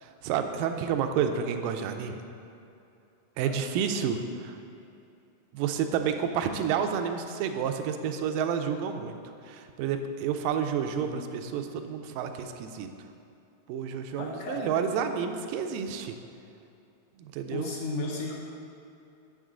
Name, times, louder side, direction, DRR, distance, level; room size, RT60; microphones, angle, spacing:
voice 1, 0.0-2.2 3.4-4.6 5.5-9.1 9.4-12.9 13.7-16.2 17.2-17.7, right 7 dB, 85° right, 7 dB, 2.2 m, -30 dB
voice 2, 14.2-14.7 17.5-18.4, left 3 dB, 80° left, -1 dB, 1.5 m, -35 dB
9.1 x 6.9 x 3.7 m, 2.7 s
omnidirectional pair, 3.9 m